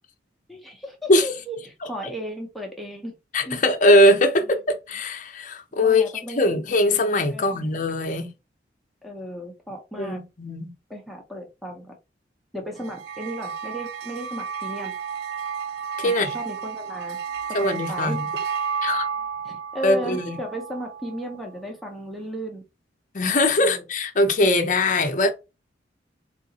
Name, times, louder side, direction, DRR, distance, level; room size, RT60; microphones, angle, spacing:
voice 1, 0.5-3.1 3.5-3.6 4.4-4.5 5.8-6.5 7.3-7.6 9.0-10.2 10.9-11.9 12.5-14.9 16.0-17.2 17.5-18.3 19.4-22.6 23.6-23.8, equal, ahead, 0.6 m, -35 dB
voice 2, 3.3-8.3 10.0-10.7 16.0-16.3 17.5-18.3 18.8-19.1 19.8-20.4 23.1-25.3, left 1 dB, 45° left, 0.6 m, -21 dB
sound 1, 12.8-21.4, right 6 dB, 65° right, 0.3 m, -32 dB
3.8 x 2.4 x 2.7 m
head